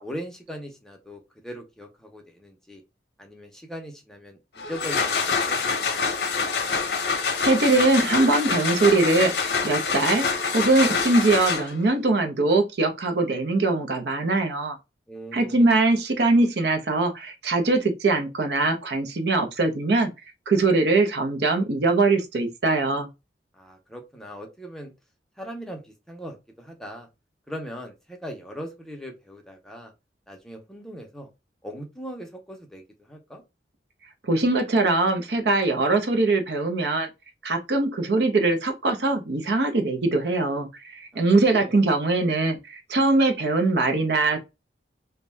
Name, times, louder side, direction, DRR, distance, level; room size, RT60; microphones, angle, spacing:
voice 1, 0.0-2.8 3.2-6.6 15.1-15.7 23.5-24.9 25.4-27.1 27.5-29.9 30.3-31.3 31.6-33.4 41.1-41.2 41.5-41.7, equal, 5° left, 0.5 m, -40 dB
sound 1, 4.6-11.9, left 5 dB, 70° left, 0.7 m, -26 dB
voice 2, 7.4-14.8 15.3-20.1 20.5-23.1 34.2-37.1 37.4-44.4, right 2 dB, 70° right, 0.6 m, -22 dB
2.6 x 2.2 x 3.2 m
head